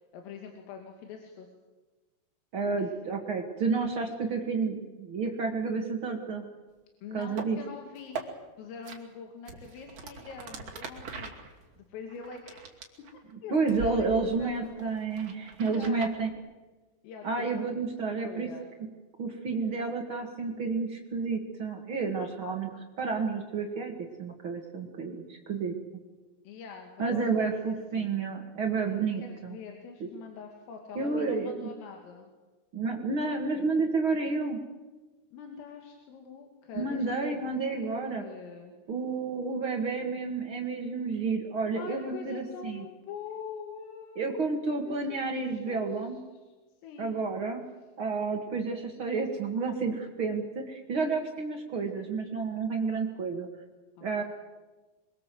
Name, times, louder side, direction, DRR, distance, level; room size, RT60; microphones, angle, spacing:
voice 1, 0.1-1.5 2.8-2.9 7.0-8.2 8.6-12.7 13.4-14.8 15.6-16.1 17.0-17.7 18.0-18.7 26.4-28.2 28.8-32.3 35.3-38.7 41.7-45.9 46.8-47.1, left 6 dB, 80° left, 3 dB, 4.9 m, -44 dB
voice 2, 2.5-6.4 7.1-7.6 13.5-16.3 17.2-18.5 19.2-22.7 23.0-25.7 27.0-29.6 30.0-30.1 30.9-31.7 32.7-34.6 36.7-38.2 38.9-42.8 44.1-46.2 47.0-47.6 48.0-53.5 54.0-54.2, right 4 dB, 70° right, 2 dB, 1.2 m, -30 dB
sound 1, 7.2-7.5 8.0-8.3 8.8-9.0 9.5-13.3 13.7-13.9 14.3-16.1, right 5 dB, 40° right, 3.0 m, -41 dB
27.0 x 23.0 x 7.8 m, 1.2 s
omnidirectional pair, 5.8 m